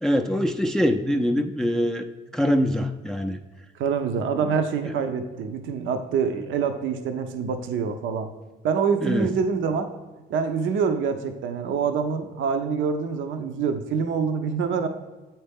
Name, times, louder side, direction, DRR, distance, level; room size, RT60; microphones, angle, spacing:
voice 1, 0.0-2.1 2.3-3.4 4.8-4.9 9.0-9.3, equal, 5° left, 6 dB, 0.3 m, -23 dB
voice 2, 3.7-8.3 8.6-9.9 10.3-14.9, right 6 dB, 75° right, 7 dB, 0.6 m, -25 dB
7.8 x 4.3 x 3.5 m, 1.2 s
cardioid pair, 90°, 20 cm